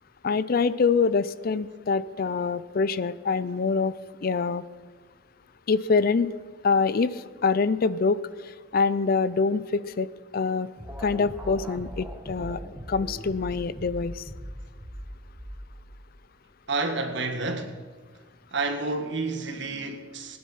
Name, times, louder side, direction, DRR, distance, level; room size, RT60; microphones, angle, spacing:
voice 1, 0.2-3.9 4.2-4.6 5.7-6.3 6.6-10.7 11.0-12.6 12.9-14.3, left 4 dB, 45° left, 0.4 m, -25 dB
sound 1, 10.8-16.2, equal, 10° right, 1.1 m, -40 dB
voice 2, 16.7-17.8 18.5-20.4, right 3 dB, 60° right, 1.6 m, -29 dB
21.0 x 9.6 x 5.6 m
head